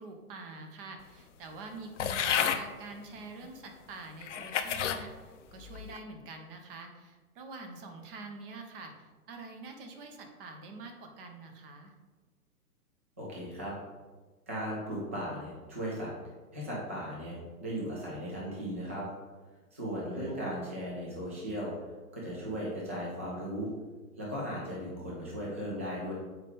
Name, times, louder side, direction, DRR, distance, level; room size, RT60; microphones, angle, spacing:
voice 1, 0.0-11.9 20.1-20.7, right 3 dB, 35° right, 4 dB, 0.9 m, -46 dB
sound 1, 2.0-2.6 3.4-3.5 4.2-5.0 5.6-6.0, left 8 dB, 55° left, 0.5 m, -31 dB
voice 2, 13.2-13.7 14.5-16.1 16.5-19.0 19.7-21.7 22.1-23.7 24.2-26.1, equal, 10° right, -5 dB, 0.3 m, -37 dB
7.1 x 4.6 x 3.4 m, 1.3 s
hypercardioid pair, 120°, 46 cm